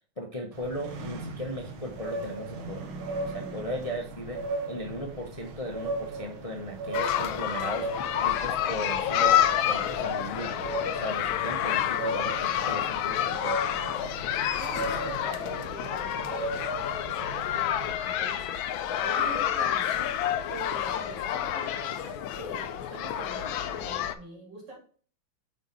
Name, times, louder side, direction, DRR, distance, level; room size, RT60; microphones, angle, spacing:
voice 1, 0.2-2.9 3.2-4.4 4.7-7.9 8.2-9.4 9.6-10.5 10.9-13.6, equal, 50° left, 2 dB, 0.4 m, -37 dB
sound 1, 0.5-18.0, right 2 dB, 85° right, 1.8 m, -37 dB
sound 2, 6.9-24.1, left 10 dB, 80° left, 1.4 m, -29 dB
voice 2, 14.6-24.8, right 3 dB, 60° right, -4 dB, 3.8 m, -44 dB
6.4 x 4.4 x 3.9 m, 0.44 s
omnidirectional pair, 2.2 m